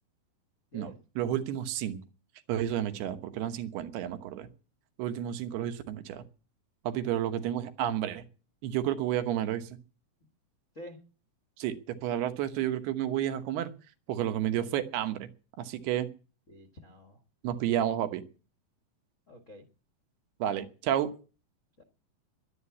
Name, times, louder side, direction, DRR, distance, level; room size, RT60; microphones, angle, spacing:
voice 1, 0.7-2.0 2.5-4.5 5.0-6.2 6.8-8.2 8.6-9.7 11.6-13.7 14.1-15.3 15.6-16.1 17.4-18.2 20.4-21.1, right 11 dB, 85° right, 9 dB, 3.2 m, -31 dB
voice 2, 16.5-17.2 19.3-19.6 21.8-21.9, left 1 dB, 60° left, 5 dB, 0.7 m, -48 dB
11.5 x 11.0 x 8.4 m, 0.36 s
omnidirectional pair, 4.5 m